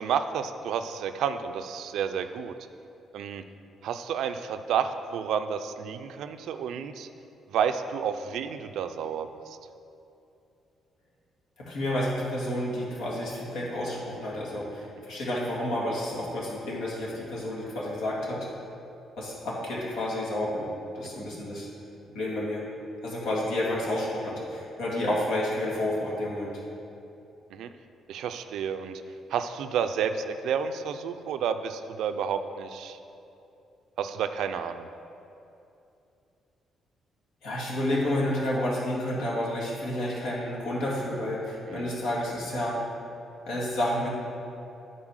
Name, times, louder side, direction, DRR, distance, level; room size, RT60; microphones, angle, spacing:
voice 1, 0.0-2.5 3.1-3.4 3.8-7.1 7.5-9.6 21.1-21.2 27.5-27.7 28.1-29.0 29.3-33.0 34.0-34.9 41.7-41.9, right 7 dB, 80° right, 9 dB, 0.4 m, -30 dB
voice 2, 11.6-18.5 19.2-20.7 20.9-21.7 22.1-22.6 23.0-26.6 37.4-42.8 43.5-44.1, left 1 dB, 85° left, -5 dB, 2.0 m, -30 dB
8.8 x 4.1 x 6.4 m, 2.8 s
cardioid pair, 90°, 0 cm